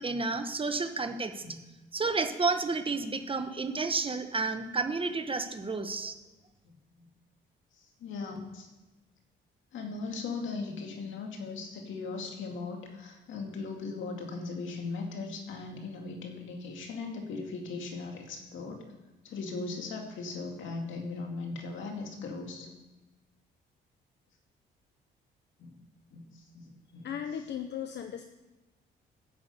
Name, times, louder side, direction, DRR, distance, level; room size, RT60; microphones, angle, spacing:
voice 1, 0.0-1.4 1.9-6.2, right 3 dB, 25° right, 8 dB, 1.1 m, -31 dB
voice 2, 8.0-8.7 9.7-18.8 19.2-22.7 25.6-25.8 26.1-27.1, left 4 dB, 75° left, 2 dB, 2.2 m, -38 dB
voice 3, 27.0-28.2, left 8 dB, 60° left, 7 dB, 0.7 m, -36 dB
11.0 x 6.2 x 8.2 m, 1.1 s
cardioid pair, 90°, 20 cm